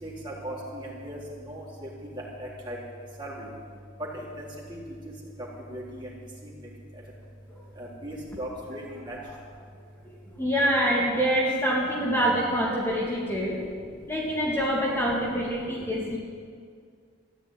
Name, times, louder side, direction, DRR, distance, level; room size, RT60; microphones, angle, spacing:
voice 1, 0.0-1.2 1.5-1.9 2.1-2.8 3.2-3.5 4.4-4.5 5.7-6.1 7.8-9.2, right 1 dB, 25° right, -5 dB, 3.9 m, -37 dB
voice 2, 10.0-13.6 14.1-16.2, equal, 15° left, -5 dB, 2.5 m, -26 dB
14.5 x 10.5 x 9.4 m, 2.1 s
head